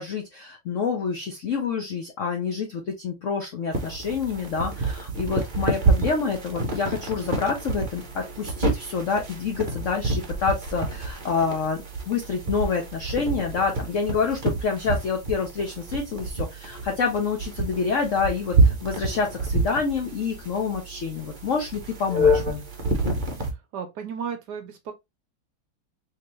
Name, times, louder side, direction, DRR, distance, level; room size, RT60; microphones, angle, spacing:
voice 1, 0.0-22.6, left 5 dB, 75° left, 0.7 m, -27 dB
sound 1, 3.7-23.5, right 2 dB, 45° right, 0.6 m, -28 dB
voice 2, 23.7-24.9, right 7 dB, 70° right, 1.1 m, -33 dB
3.7 x 2.8 x 3.0 m
omnidirectional pair, 2.2 m